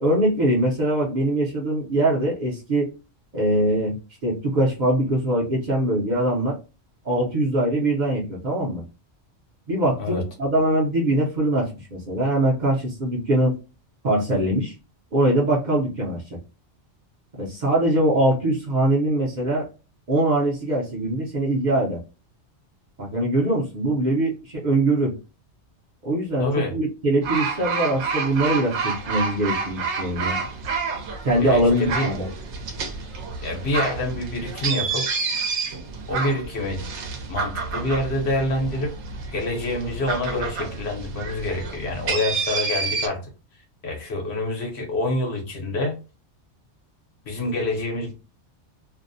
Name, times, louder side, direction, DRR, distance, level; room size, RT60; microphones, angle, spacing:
voice 1, 0.0-2.9 3.3-6.6 7.0-8.8 9.7-13.6 14.0-14.7 15.1-16.4 17.4-19.7 20.1-22.0 23.0-25.2 26.0-30.4 31.2-32.3, right 1 dB, 50° right, -3 dB, 0.7 m, -22 dB
voice 2, 26.4-26.7 31.4-32.1 33.4-35.2 36.1-36.9 37.3-39.0 39.3-43.2 43.8-46.0 47.3-48.1, left 1 dB, 65° left, 1 dB, 1.1 m, -27 dB
sound 1, 27.2-43.1, right 4 dB, 80° right, 0.9 m, -29 dB
2.6 x 2.0 x 2.5 m, 0.31 s
omnidirectional pair, 1.2 m